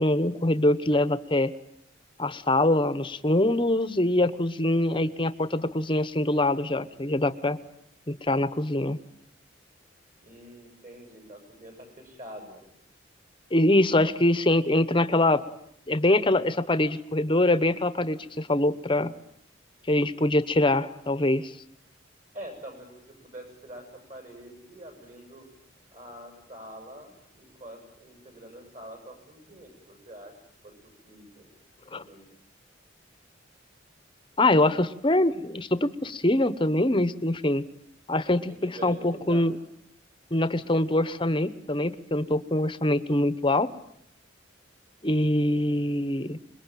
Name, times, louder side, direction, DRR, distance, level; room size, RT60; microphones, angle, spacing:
voice 1, 0.0-1.5 2.2-7.6 8.1-9.0 13.5-15.4 15.9-19.1 19.9-21.5 31.9-32.0 34.4-37.6 38.1-39.5 40.3-43.7 45.0-46.4, left 1 dB, 25° left, 15 dB, 1.0 m, -24 dB
voice 2, 10.2-12.7 22.3-25.5 25.9-30.3 30.6-30.7 31.0-31.5 31.9-32.3 38.5-39.5 45.2-45.7, right 1 dB, 40° right, 5 dB, 7.7 m, -45 dB
26.5 x 22.0 x 9.2 m, 0.73 s
head